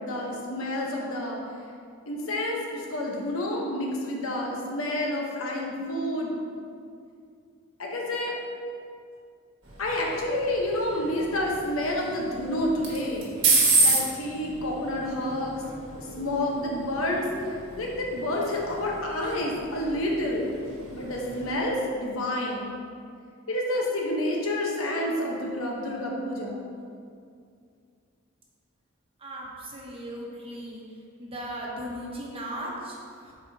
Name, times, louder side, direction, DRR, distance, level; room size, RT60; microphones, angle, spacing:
voice 1, 0.0-1.4 2.1-6.4 7.8-8.4 9.8-15.6 16.0-17.3 17.8-20.5 20.9-22.7 23.5-26.6, left 1 dB, 80° left, -2 dB, 1.0 m, -29 dB
sound 1, 9.6-21.5, right 3 dB, 65° right, 1.3 m, -30 dB
voice 2, 29.2-30.8 31.2-33.3, right 1 dB, 25° right, -3 dB, 1.0 m, -37 dB
7.3 x 4.9 x 2.8 m, 2.3 s
head